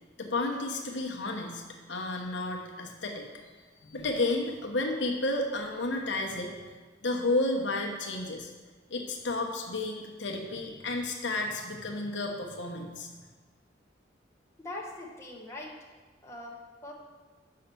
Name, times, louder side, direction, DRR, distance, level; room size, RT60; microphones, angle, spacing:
voice 1, 0.2-1.6 1.9-3.3 3.8-6.7 7.0-8.5 8.9-13.1, left 2 dB, 70° left, 1 dB, 1.1 m, -32 dB
voice 2, 14.6-15.7 16.2-16.9, left 2 dB, 15° left, -3 dB, 1.1 m, -42 dB
5.8 x 5.7 x 6.9 m, 1.4 s
head